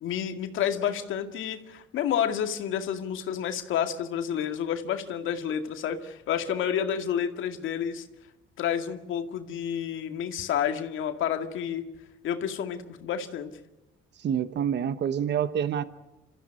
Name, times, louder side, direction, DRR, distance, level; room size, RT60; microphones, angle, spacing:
voice 1, 0.0-8.1 8.6-11.8 12.2-13.5, left 9 dB, 80° left, 7 dB, 2.1 m, -30 dB
voice 2, 14.2-15.8, right 8 dB, 60° right, 13 dB, 1.0 m, -27 dB
27.5 x 14.5 x 9.9 m, 0.98 s
cardioid pair, 90°, 20 cm